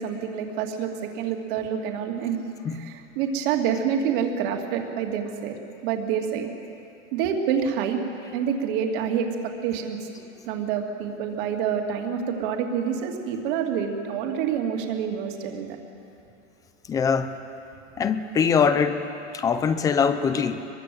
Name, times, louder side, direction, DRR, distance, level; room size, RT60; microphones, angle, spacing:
voice 1, 0.0-5.5 5.8-6.5 7.1-8.0 8.3-10.0 10.5-15.8, right 7 dB, 45° right, 3 dB, 2.8 m, -27 dB
voice 2, 16.9-17.3 18.0-19.0 19.3-20.6, left 6 dB, 10° left, 10 dB, 0.5 m, -22 dB
23.5 x 22.5 x 7.9 m, 2.7 s
supercardioid pair, 160°, 37 cm